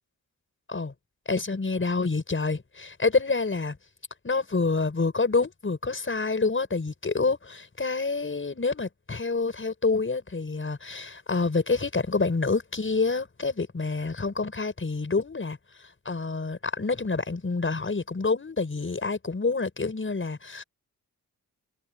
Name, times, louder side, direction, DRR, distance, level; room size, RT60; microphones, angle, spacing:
voice 1, 1.3-3.8 4.2-15.6 16.0-20.6, left 4 dB, 35° left, 6.3 m, -27 dB
cardioid pair, 80°, 35 cm